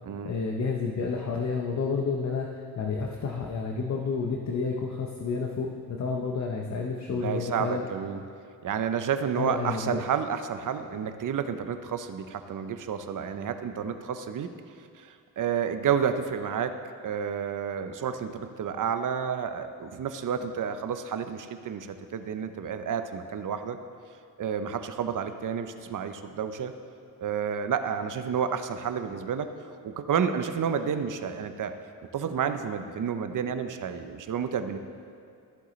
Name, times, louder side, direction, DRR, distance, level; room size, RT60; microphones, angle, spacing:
voice 1, 0.2-7.8 9.3-10.0, left 4 dB, 50° left, 1 dB, 0.7 m, -30 dB
voice 2, 7.1-8.2 8.6-14.5 15.0-16.8 17.0-23.8 24.4-26.7 27.2-31.7 32.1-34.8, right 7 dB, 55° right, 9 dB, 0.6 m, -30 dB
14.0 x 8.0 x 3.1 m, 2.4 s
wide cardioid pair, 120°, 37 cm